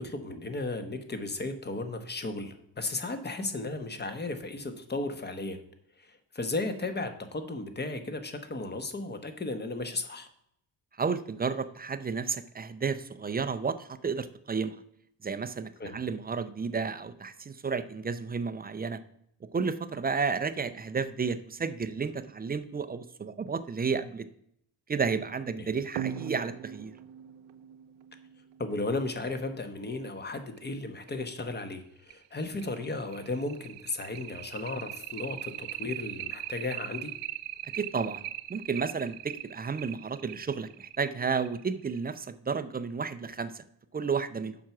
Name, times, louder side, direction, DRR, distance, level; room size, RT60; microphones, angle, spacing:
voice 1, 0.0-5.6 6.0-10.3 15.8-15.9 25.6-25.7 28.6-37.1, left 2 dB, 20° left, 8 dB, 1.0 m, -35 dB
voice 2, 11.0-14.8 15.2-19.0 19.5-24.3 24.9-26.9 37.7-38.2 38.5-43.6 43.9-44.6, right 5 dB, 20° right, 12 dB, 0.4 m, -32 dB
sound 1, 25.9-29.1 30.6-30.7 31.1-31.2 31.6-31.7 32.1-42.1, right 12 dB, 70° right, 0.5 m, -40 dB
7.5 x 5.8 x 5.9 m, 0.71 s
cardioid pair, 130°, 46 cm